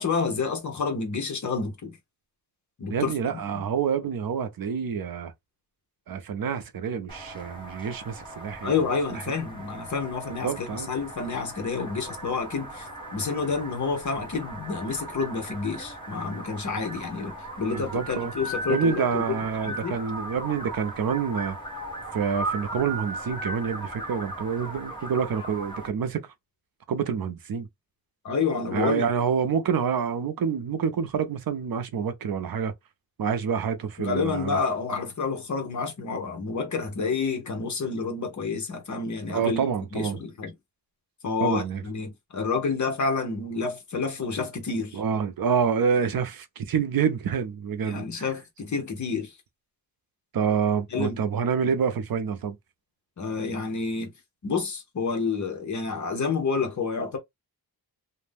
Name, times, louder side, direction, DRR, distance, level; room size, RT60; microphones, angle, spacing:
voice 1, 0.0-2.0 2.8-3.6 8.6-20.0 28.2-29.0 34.0-39.7 39.9-40.5 41.2-45.0 47.8-49.3 50.9-51.2 53.2-54.1 54.4-57.2, left 4 dB, 50° left, 0.8 m, -29 dB
voice 2, 2.9-5.3 6.1-8.7 9.1-9.3 10.4-10.9 17.7-18.3 18.7-21.6 22.1-26.2 26.9-27.7 28.7-32.7 33.2-34.6 39.3-40.2 41.4-41.8 44.9-48.2 50.3-52.6, right 6 dB, 65° right, 0.5 m, -27 dB
sound 1, 7.1-25.9, right 1 dB, 15° left, 0.8 m, -38 dB
2.6 x 2.0 x 3.3 m
wide cardioid pair, 180°, 38 cm